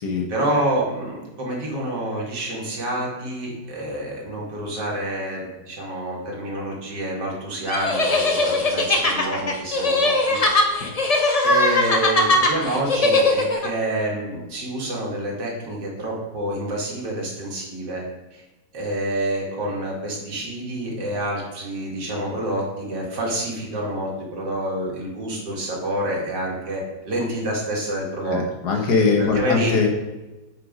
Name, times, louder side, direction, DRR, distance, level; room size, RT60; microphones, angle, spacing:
voice 1, 0.3-10.6 11.4-18.0 18.3-18.4 18.7-28.4 28.7-28.9 29.2-29.7, right 1 dB, 75° right, -3 dB, 2.4 m, -28 dB
sound 1, 7.7-13.7, left 2 dB, 40° left, 0.5 m, -20 dB
voice 2, 28.3-29.9, left 4 dB, 65° left, 2 dB, 1.7 m, -21 dB
7.6 x 5.0 x 5.1 m, 1.1 s
omnidirectional pair, 1.9 m